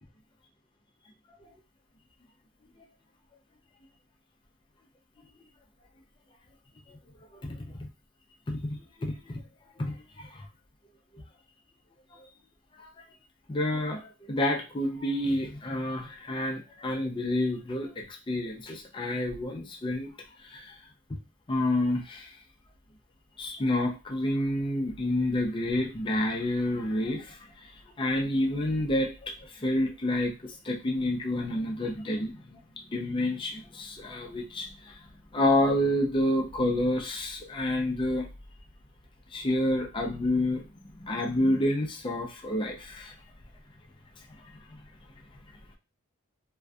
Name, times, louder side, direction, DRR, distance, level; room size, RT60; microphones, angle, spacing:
voice 1, 7.3-7.9 8.5-9.4 9.8-10.5 11.1-11.2 12.1-12.2 12.8-12.9 13.5-20.1 20.4-20.8 21.5-22.4 23.4-27.7 28.0-32.6 32.9-35.0 35.3-38.3 39.3-40.7 41.0-43.1, left 1 dB, 25° left, 1 dB, 0.4 m, -29 dB
2.5 x 2.3 x 2.2 m, 0.29 s
head